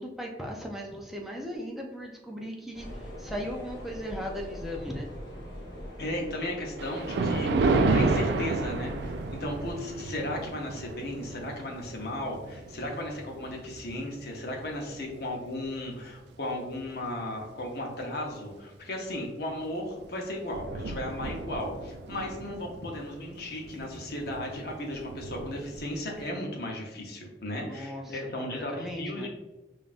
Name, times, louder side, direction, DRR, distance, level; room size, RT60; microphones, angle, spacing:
voice 1, 0.0-5.1 27.6-29.3, equal, ahead, -1 dB, 0.4 m, -37 dB
sound 1, 2.7-9.7, equal, 25° left, 1.4 m, -43 dB
voice 2, 6.0-29.3, left 1 dB, 60° left, 0 dB, 0.8 m, -35 dB
Thunder, 6.8-15.3 15.8-16.1 16.8-16.9 17.2-17.3 19.5-19.7 20.0-20.1 20.3-26.3, right 3 dB, 70° right, 0.3 m, -32 dB
5.3 x 2.4 x 2.5 m, 1.1 s
head